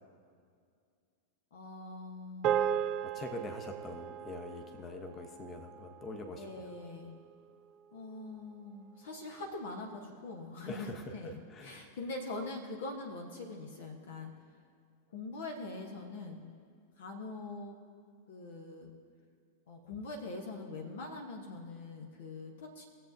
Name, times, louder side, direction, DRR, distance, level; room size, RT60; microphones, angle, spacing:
voice 1, 1.5-2.9 6.4-7.1 7.9-11.3 11.6-14.3 15.1-16.4 17.0-17.7 18.3-18.9 19.7-22.9, left 2 dB, 60° left, 1 dB, 1.1 m, -43 dB
sound 1, 2.4-7.0, right 10 dB, 35° right, 0.6 m, -36 dB
voice 2, 3.1-6.7 10.6-11.9, left 2 dB, 25° left, 4 dB, 1.0 m, -44 dB
20.5 x 7.6 x 2.7 m, 2.2 s
figure-of-eight pair, 90°, 0 cm